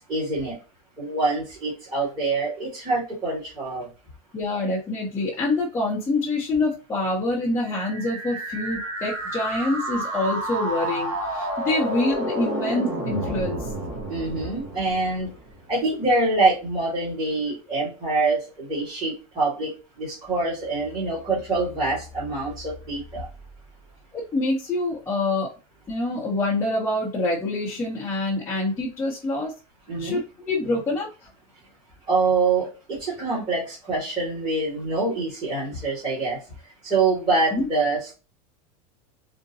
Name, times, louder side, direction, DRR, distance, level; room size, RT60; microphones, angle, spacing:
voice 1, 0.1-0.5 1.0-3.9 14.1-15.3 15.7-19.7 20.0-23.3 29.9-30.2 32.1-36.4 36.8-38.1, right 3 dB, 20° right, -7 dB, 1.7 m, -25 dB
voice 2, 4.3-13.7 24.1-25.5 25.9-29.5 30.0-30.2 30.5-31.3 37.5-37.7, left 2 dB, 15° left, -5 dB, 0.8 m, -26 dB
sound 1, 7.6-15.5, right 1 dB, 65° right, 1.7 m, -30 dB
3.7 x 2.1 x 2.7 m, 0.31 s
supercardioid pair, 145°, 19 cm